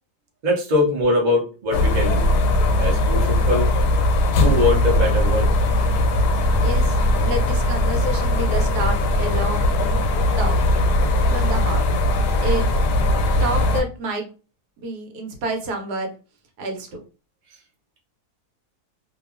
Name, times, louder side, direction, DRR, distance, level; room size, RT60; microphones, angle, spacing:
voice 1, 0.4-2.3 2.8-3.7 4.4-5.5, left 2 dB, 40° right, -2 dB, 0.7 m, -22 dB
sound 1, 1.7-13.8, left 1 dB, 80° left, 1.1 m, -19 dB
voice 2, 6.6-7.0 7.2-9.7 10.4-10.8 11.3-11.8 12.4-12.7 13.4-14.3 14.8-16.1 16.6-17.0, right 2 dB, 80° right, 3 dB, 1.2 m, -28 dB
2.8 x 2.2 x 2.4 m, 0.34 s
omnidirectional pair, 1.7 m